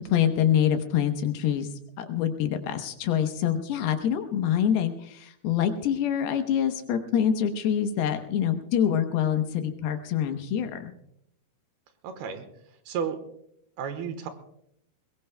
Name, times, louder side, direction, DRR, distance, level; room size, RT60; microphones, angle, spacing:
voice 1, 0.1-1.7 2.0-10.9, left 9 dB, 75° left, 7 dB, 2.8 m, -25 dB
voice 2, 12.0-12.5 12.9-13.2 13.8-14.3, right 7 dB, 75° right, 9 dB, 3.0 m, -32 dB
21.5 x 21.5 x 2.2 m, 0.74 s
omnidirectional pair, 4.8 m